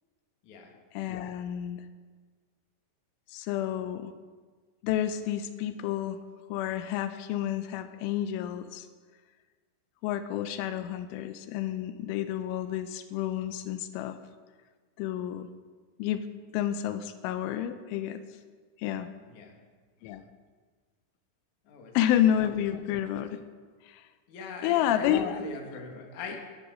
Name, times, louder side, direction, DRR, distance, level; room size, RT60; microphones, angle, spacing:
voice 1, 0.9-1.9 3.3-4.1 4.8-6.2 6.5-8.9 10.0-14.2 15.0-15.5 16.0-16.3 16.5-18.2 18.8-19.1 20.0-20.2 21.9-23.4 23.8-24.1 24.6-25.4 26.3-26.4, left 11 dB, 90° left, 10 dB, 3.1 m, -30 dB
voice 2, 21.6-22.0 24.3-26.4, left 4 dB, 50° left, 1 dB, 2.7 m, -41 dB
11.5 x 11.0 x 6.2 m, 1.5 s
omnidirectional pair, 5.5 m